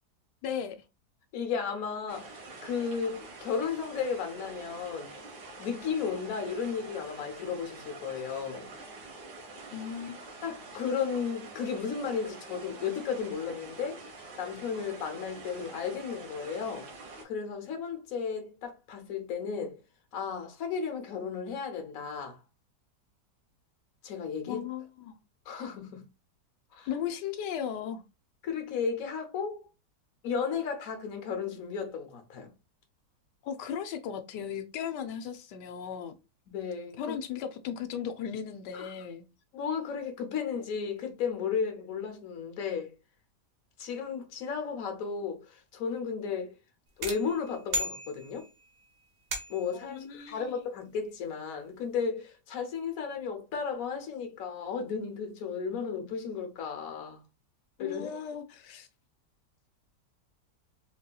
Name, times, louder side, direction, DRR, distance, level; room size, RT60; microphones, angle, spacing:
voice 1, 0.4-0.8 9.7-10.2 24.5-25.2 26.9-28.0 33.4-36.1 36.9-39.2 49.7-50.6 57.8-58.9, left 8 dB, 85° left, 1.2 m, -36 dB
voice 2, 1.3-5.1 5.6-8.7 10.4-14.0 14.4-16.9 17.2-19.8 20.1-22.4 24.0-24.7 25.5-26.0 26.7-26.9 28.4-29.7 30.2-32.5 36.5-37.2 38.7-38.9 39.5-43.0 43.8-46.5 47.0-48.5 49.5-57.2 57.8-58.2, left 6 dB, 60° left, 1.2 m, -34 dB
sound 1, 2.1-17.2, right 3 dB, 80° right, 1.7 m, -46 dB
sound 2, 47.0-48.6 49.3-49.8, right 1 dB, 60° right, 1.0 m, -35 dB
4.1 x 2.8 x 2.2 m
omnidirectional pair, 1.8 m